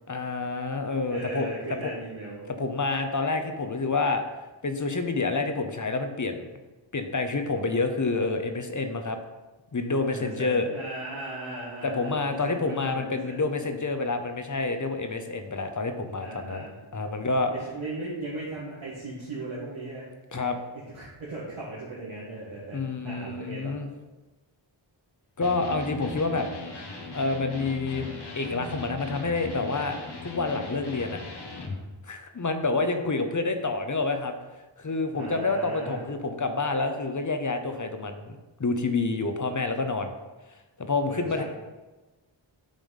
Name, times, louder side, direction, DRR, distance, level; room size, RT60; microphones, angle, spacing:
voice 1, 0.1-1.5 1.8-1.9 2.5-4.2 4.6-6.5 6.9-9.2 9.7-10.7 11.8-16.7 16.9-17.5 20.3-20.6 22.7-23.9 25.4-26.5 27.1-28.1 28.4-30.0 30.2-31.2 32.1-34.3 34.8-40.1 40.8-41.4, left 3 dB, 40° left, 6 dB, 0.8 m, -28 dB
voice 2, 1.1-2.5 10.1-13.7 16.2-16.8 17.5-20.1 20.9-23.7 35.1-36.0 41.1-41.4, right 2 dB, 85° right, -7 dB, 1.6 m, -37 dB
Electric guitar, 25.4-31.8, left 3 dB, 55° left, 1.2 m, -38 dB
9.1 x 3.4 x 5.6 m, 1.2 s
wide cardioid pair, 60°, 47 cm